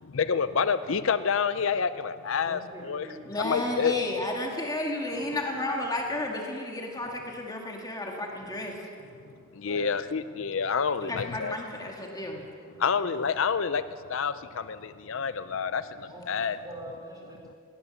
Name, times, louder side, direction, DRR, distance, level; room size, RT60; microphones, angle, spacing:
voice 1, 0.0-3.1 3.4-3.9 9.5-11.6 12.8-13.8 14.1-16.6, left 6 dB, 65° left, 13 dB, 0.5 m, -28 dB
voice 2, 2.4-3.8 5.2-5.6 9.6-9.9 12.9-13.1 16.1-17.6, right 1 dB, 20° right, -1 dB, 4.7 m, -45 dB
voice 3, 3.3-8.8 11.0-12.4, left 2 dB, 20° left, 0 dB, 2.0 m, -32 dB
19.5 x 19.0 x 7.1 m, 2.4 s
head